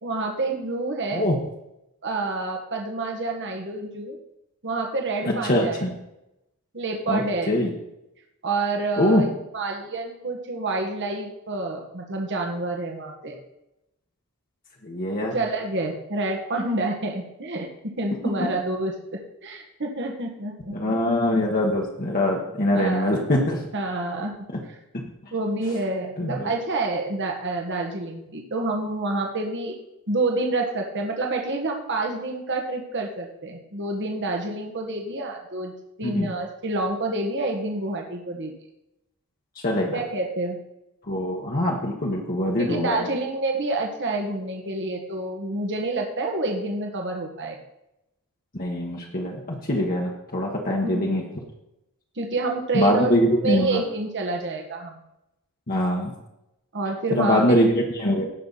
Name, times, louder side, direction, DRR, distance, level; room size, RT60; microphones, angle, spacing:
voice 1, 0.0-1.2 2.0-4.2 4.6-5.8 6.7-7.6 8.4-13.4 15.2-17.7 18.0-20.9 22.7-23.1 23.7-24.3 24.6-24.8 25.3-29.7 30.1-35.7 36.0-38.5 39.9-40.6 42.6-47.6 50.8-51.0 52.2-53.1 53.4-55.0 56.7-57.4, right 2 dB, 55° right, 2 dB, 1.6 m, -28 dB
voice 2, 5.5-5.9 7.1-7.2 7.5-7.7 9.0-9.2 14.8-15.3 20.7-23.6 24.9-25.1 26.2-26.5 36.0-36.3 39.6-39.9 41.1-43.1 48.5-51.2 52.7-53.8 55.7-56.1 57.1-58.2, left 1 dB, 40° left, -2 dB, 1.4 m, -23 dB
17.0 x 6.1 x 4.1 m, 0.88 s
head